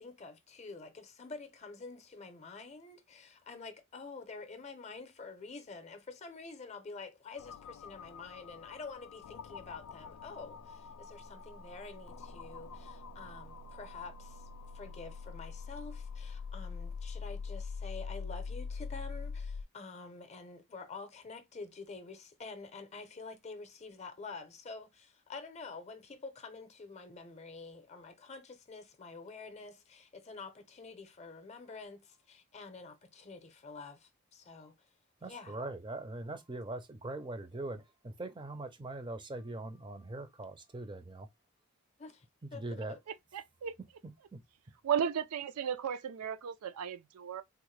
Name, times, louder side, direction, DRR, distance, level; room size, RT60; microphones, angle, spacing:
voice 1, 0.0-14.5 14.7-34.8 35.2-35.6 42.0-42.2 42.5-42.6 42.9-43.0, left 4 dB, 30° left, 0.6 m, -48 dB
sound 1, 7.4-19.6, left 5 dB, 75° left, 0.3 m, -44 dB
voice 2, 35.2-41.3 42.6-43.0, right 2 dB, 20° right, 0.5 m, -41 dB
voice 3, 43.3-43.7 44.8-47.4, right 8 dB, 90° right, 0.4 m, -34 dB
3.5 x 2.1 x 3.1 m
head